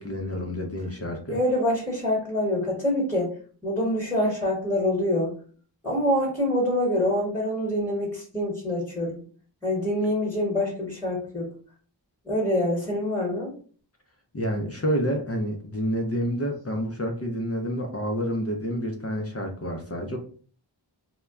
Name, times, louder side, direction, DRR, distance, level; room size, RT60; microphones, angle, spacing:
voice 1, 0.0-1.4 14.3-20.2, equal, 35° left, 2 dB, 0.5 m, -29 dB
voice 2, 1.3-3.3 3.6-5.3 5.8-9.2 9.6-11.5 12.2-13.5, left 1 dB, 5° left, -3 dB, 1.1 m, -25 dB
2.2 x 2.1 x 3.5 m, 0.43 s
wide cardioid pair, 50°, 46 cm